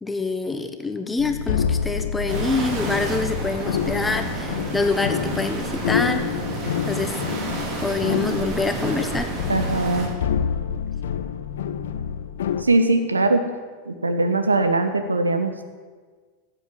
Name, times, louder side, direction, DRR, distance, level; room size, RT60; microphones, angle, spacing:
voice 1, 0.0-6.2 6.9-7.1 7.8-9.3, left 3 dB, 10° left, 7 dB, 1.2 m, -26 dB
sound 1, 1.2-12.6, left 8 dB, 60° left, 0.8 m, -28 dB
sound 2, 2.3-10.1, right 3 dB, 40° right, 3.1 m, -30 dB
voice 2, 9.5-10.1 12.6-13.4 13.9-15.6, right 2 dB, 80° right, 8 dB, 1.3 m, -21 dB
16.0 x 8.3 x 7.7 m, 1.5 s
figure-of-eight pair, 90°, 0 cm